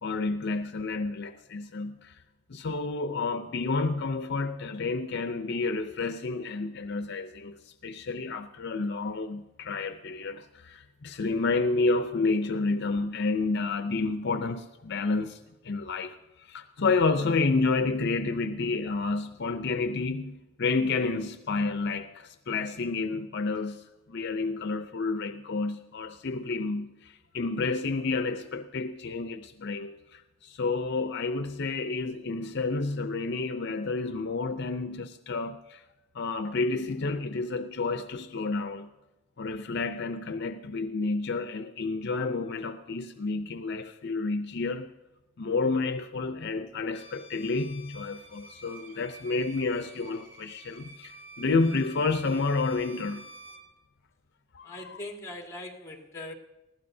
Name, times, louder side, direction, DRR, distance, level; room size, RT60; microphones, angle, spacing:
voice 1, 0.0-2.2 2.5-35.8 36.1-38.9 39.4-44.9 45.4-53.3 54.5-55.0, left 3 dB, 60° left, 8 dB, 0.6 m, -30 dB
Bowed string instrument, 46.9-53.7, right 1 dB, 40° left, 4.1 m, -49 dB
voice 2, 54.6-56.3, left 1 dB, 15° left, 0 dB, 2.1 m, -41 dB
21.0 x 15.5 x 2.7 m, 1.0 s
head